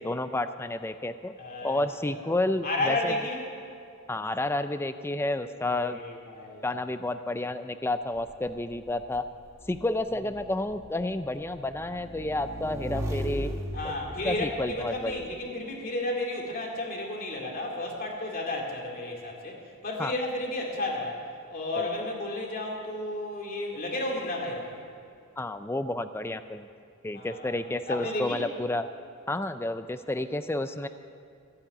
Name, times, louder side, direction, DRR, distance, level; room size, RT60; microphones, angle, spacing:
voice 1, 0.0-1.3 1.6-3.1 4.1-6.0 6.6-9.3 9.7-13.5 14.2-15.2 20.0-20.1 21.8-21.9 25.4-26.7 27.0-28.9 29.3-30.9, left 2 dB, 10° left, 11 dB, 0.4 m, -30 dB
voice 2, 1.4-1.8 2.6-3.4 5.7-6.6 13.7-21.2 21.5-24.8 27.1-27.5 27.9-28.4, left 2 dB, 40° left, 0 dB, 2.5 m, -32 dB
Motorcycle / Engine, 8.1-15.2, equal, 15° right, 1.2 m, -38 dB
14.5 x 8.6 x 9.2 m, 2.4 s
head